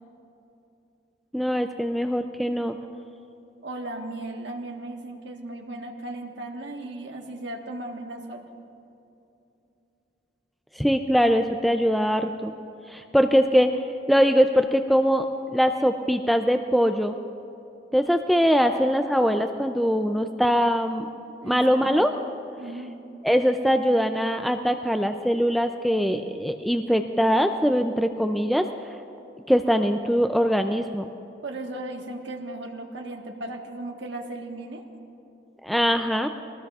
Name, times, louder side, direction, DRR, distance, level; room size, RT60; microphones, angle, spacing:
voice 1, 1.3-2.8 10.8-12.5 12.9-13.7 14.1-15.3 15.5-17.2 17.9-21.1 21.4-22.1 23.2-28.7 29.5-31.1 35.6-36.3, equal, ahead, 6 dB, 0.3 m, -22 dB
voice 2, 3.6-8.5 21.4-22.0 22.6-23.0 31.4-34.8, right 2 dB, 80° right, 2 dB, 1.4 m, -36 dB
22.5 x 19.0 x 2.4 m, 2.8 s
head